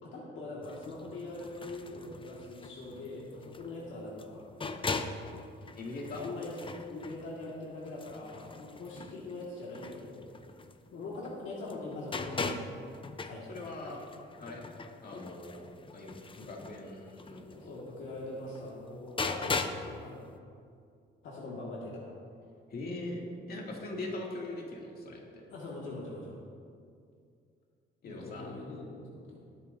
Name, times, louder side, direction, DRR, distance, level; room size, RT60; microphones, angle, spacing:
voice 1, 0.0-4.5 6.2-6.6 6.9-10.4 10.9-12.6 13.2-13.6 17.6-19.5 19.7-20.2 21.2-22.1 25.5-26.4 28.0-29.4, left 2 dB, 80° left, -4 dB, 1.9 m, -42 dB
sound 1, 0.6-11.4 11.6-19.9 20.2-20.3, left 3 dB, 25° left, 0.7 m, -40 dB
voice 2, 5.7-6.3 13.5-14.0 14.4-14.6 15.0-15.6 15.9-17.7 22.7-23.2 23.5-25.4 28.0-28.5, left 2 dB, 50° left, -2 dB, 2.4 m, -41 dB
18.5 x 9.2 x 2.7 m, 2.3 s
cardioid pair, 90°, 20 cm